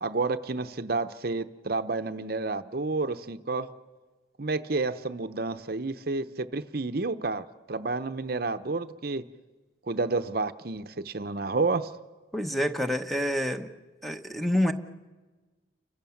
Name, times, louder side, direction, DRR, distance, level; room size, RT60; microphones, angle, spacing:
voice 1, 0.0-3.7 4.4-9.2 9.9-11.9, right 3 dB, 55° right, 11 dB, 0.8 m, -30 dB
voice 2, 12.3-13.7 14.0-14.7, equal, ahead, 7 dB, 1.1 m, -27 dB
29.5 x 25.0 x 7.2 m, 1.3 s
head